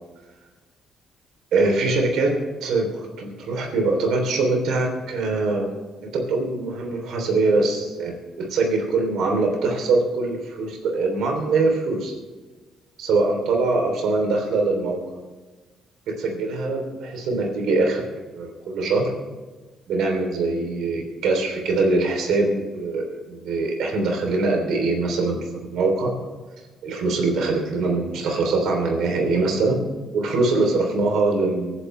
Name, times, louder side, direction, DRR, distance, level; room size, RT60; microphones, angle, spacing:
voice 1, 1.5-2.3 2.6-5.7 6.0-12.1 13.0-15.2 16.1-19.1 19.9-26.1 26.8-29.8 30.1-31.7, right 3 dB, 80° right, 2 dB, 3.3 m, -23 dB
24.5 x 11.0 x 3.3 m, 1.3 s
cardioid pair, 90°, 0 cm